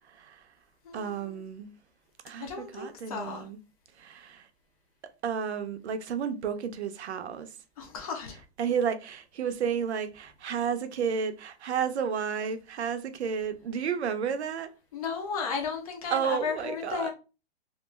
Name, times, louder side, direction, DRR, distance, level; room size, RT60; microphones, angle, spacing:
voice 1, 0.1-0.4 0.9-1.7 2.2-3.6 4.0-4.5 5.2-7.5 8.6-14.7 16.1-17.1, right 7 dB, 80° right, 0.6 m, -32 dB
voice 2, 0.8-1.4 2.4-3.5 7.8-8.4 14.9-17.1, left 5 dB, 35° left, 0.6 m, -34 dB
2.5 x 2.2 x 3.0 m
hypercardioid pair, 165°, 33 cm